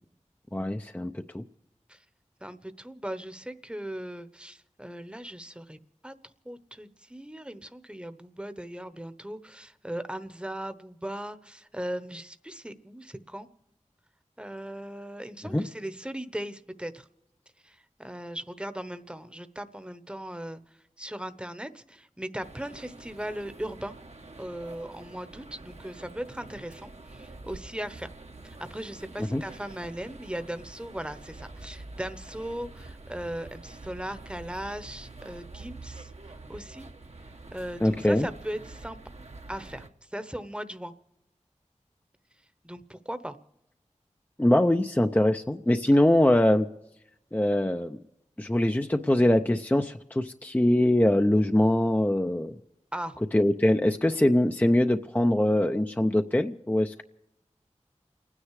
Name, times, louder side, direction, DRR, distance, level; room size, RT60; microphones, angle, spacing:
voice 1, 0.5-1.4 15.5-15.6 29.3-29.4 37.8-38.3 44.4-46.7 47.3-48.0 48.4-52.5 53.3-57.0, left 1 dB, 15° left, 6 dB, 0.5 m, -23 dB
voice 2, 2.4-5.8 6.0-6.1 6.4-13.5 14.4-17.1 17.6-23.9 24.4-28.1 28.4-36.1 36.5-36.9 37.5-39.0 39.5-40.9 42.6-43.4 52.9-53.2, right 1 dB, 10° right, 11 dB, 0.9 m, -38 dB
sound 1, 22.4-39.9, right 2 dB, 60° right, 1.1 m, -46 dB
29.5 x 9.8 x 4.8 m, 0.88 s
wide cardioid pair, 45°, 12 cm